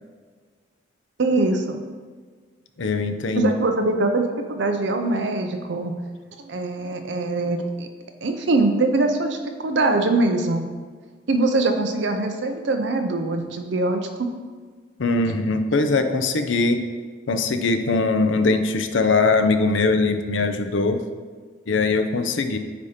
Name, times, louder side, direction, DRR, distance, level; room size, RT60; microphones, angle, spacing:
voice 1, 1.2-1.8 3.4-6.0 6.4-7.9 8.2-10.6 11.3-14.3, right 2 dB, 60° right, 5 dB, 0.6 m, -23 dB
voice 2, 2.8-3.5 15.0-16.8 17.3-21.0 21.7-22.6, left 3 dB, 65° left, 8 dB, 0.5 m, -21 dB
8.4 x 2.8 x 5.0 m, 1.5 s
head